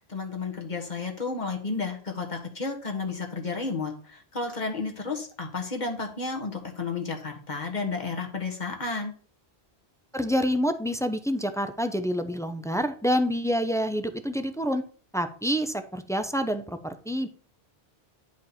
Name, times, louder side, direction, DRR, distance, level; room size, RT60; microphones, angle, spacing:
voice 1, 0.1-9.1, left 4 dB, 45° left, 2 dB, 1.6 m, -32 dB
voice 2, 10.1-14.8 15.1-17.3, equal, 5° left, 8 dB, 0.4 m, -27 dB
10.5 x 5.1 x 4.2 m, 0.43 s
omnidirectional pair, 1.0 m